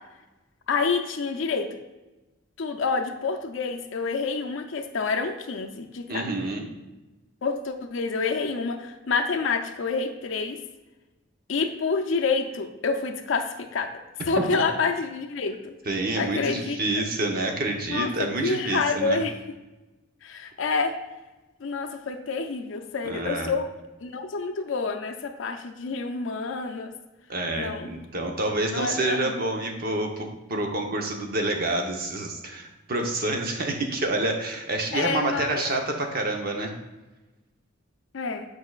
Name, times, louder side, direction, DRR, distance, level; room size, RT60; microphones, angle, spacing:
voice 1, 0.7-1.8 2.6-6.3 7.4-10.6 11.5-13.9 14.2-15.7 16.2-17.0 17.9-19.3 20.2-20.9 21.6-23.7 24.0-26.9 27.6-27.9 28.7-29.3 34.9-35.7 38.1-38.5, left 4 dB, 70° left, 5 dB, 0.5 m, -28 dB
voice 2, 6.1-6.6 14.5-14.6 15.9-19.2 23.0-23.5 27.3-36.8, right 2 dB, 50° right, 3 dB, 0.9 m, -28 dB
8.6 x 4.7 x 2.4 m, 1.1 s
head